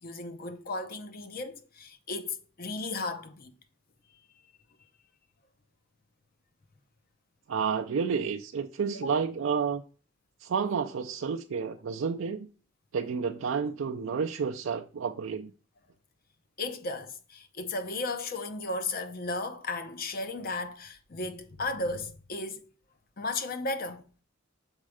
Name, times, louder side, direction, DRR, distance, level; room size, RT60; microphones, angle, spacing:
voice 1, 0.0-3.5 8.9-9.1 16.6-22.7 23.2-24.0, left 2 dB, 45° left, 0.7 m, -35 dB
voice 2, 7.5-9.8 10.4-12.5 12.9-15.5, right 6 dB, 65° right, 0.4 m, -30 dB
6.4 x 4.3 x 4.9 m
head